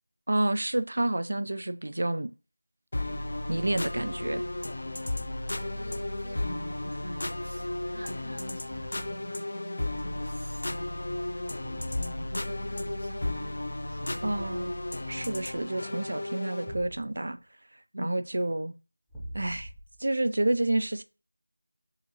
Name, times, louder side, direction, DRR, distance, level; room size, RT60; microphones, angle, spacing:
voice 1, 0.3-2.3 3.5-4.4 14.2-14.7 15.1-17.4 18.0-18.7 19.3-19.7 20.0-21.0, right 1 dB, 50° right, 0.4 m, -29 dB
sound 1, 2.9-16.8, left 1 dB, 45° left, 0.4 m, -34 dB
voice 2, 5.0-5.3 5.7-13.4 13.9-14.3 17.9-18.3, equal, 85° right, 1.7 m, -45 dB
Thump thud, 5.8-6.3 8.7-9.4 11.6-12.1 14.4-14.8 16.7-17.3 19.1-20.1, equal, 5° left, 0.7 m, -44 dB
4.7 x 2.8 x 3.0 m
figure-of-eight pair, 175°, 0 cm